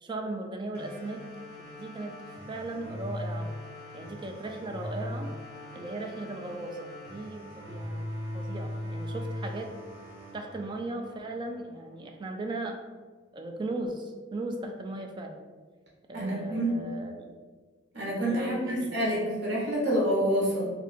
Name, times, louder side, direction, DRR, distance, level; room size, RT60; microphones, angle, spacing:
voice 1, 0.0-1.2 1.7-2.2 2.5-3.5 3.9-5.3 5.7-8.1 8.3-9.7 10.3-12.8 13.3-15.4 16.1-17.3 18.3-19.1, right 2 dB, 25° right, 3 dB, 0.3 m, -37 dB
sound 1, 0.7-11.7, left 1 dB, 15° left, 1.2 m, -40 dB
voice 2, 16.1-16.7 17.9-20.7, right 1 dB, 65° right, -4 dB, 1.1 m, -27 dB
2.6 x 2.5 x 4.1 m, 1.4 s
head